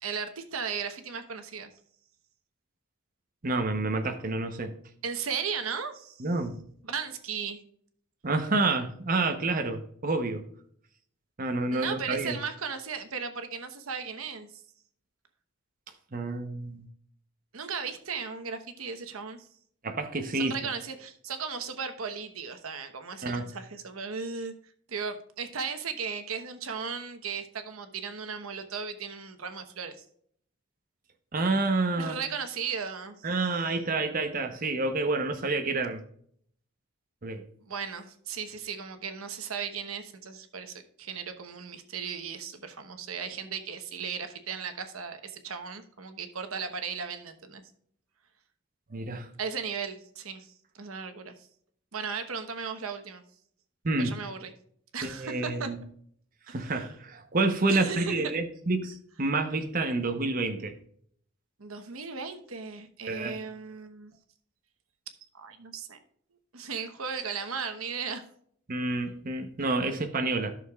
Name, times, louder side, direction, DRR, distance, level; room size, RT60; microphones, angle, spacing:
voice 1, 0.0-1.7 5.0-6.2 6.9-7.6 11.7-14.5 17.5-19.5 20.3-24.5 24.9-29.9 32.0-33.3 37.6-47.6 49.4-50.5 50.7-51.3 51.9-53.2 54.0-54.5 54.9-55.7 56.5-56.9 57.7-58.3 61.6-64.1 65.3-66.0 66.5-68.2, right 6 dB, 85° right, 1.0 m, -36 dB
voice 2, 3.4-4.7 6.2-6.6 8.2-10.5 11.4-12.4 16.1-16.9 19.8-20.6 23.2-23.5 31.3-32.2 33.2-36.0 37.2-37.4 48.9-49.3 53.8-54.2 55.0-55.8 56.5-60.8 63.1-63.4 68.7-70.5, right 3 dB, 40° right, 0.9 m, -29 dB
12.5 x 6.6 x 2.4 m
head